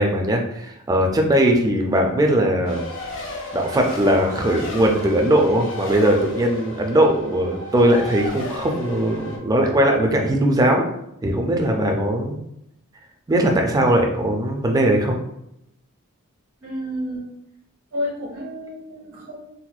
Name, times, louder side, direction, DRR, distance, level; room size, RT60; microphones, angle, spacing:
voice 1, 0.0-2.8 3.5-10.9 11.2-12.4 13.3-15.2, right 1 dB, 15° right, 1 dB, 0.4 m, -19 dB
Race car auto racing, 2.6-9.4, left 2 dB, 55° left, 0.7 m, -34 dB
voice 2, 16.6-17.3 17.9-19.4, left 1 dB, 80° right, -6 dB, 1.4 m, -30 dB
4.1 x 2.0 x 2.4 m, 0.79 s
head